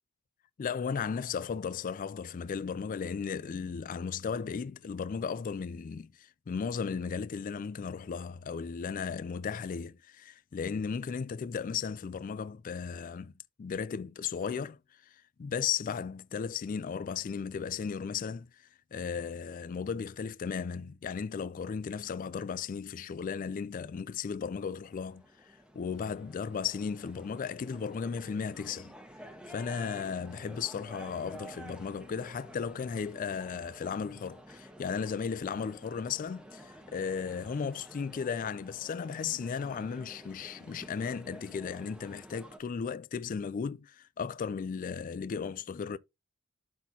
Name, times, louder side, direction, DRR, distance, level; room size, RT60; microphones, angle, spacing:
voice 1, 0.6-13.3 13.6-28.9 29.5-46.0, left 6 dB, 40° left, 0.3 m, -35 dB
sound 1, 24.6-42.6, equal, 5° right, 1.1 m, -51 dB
12.0 x 4.2 x 2.8 m
head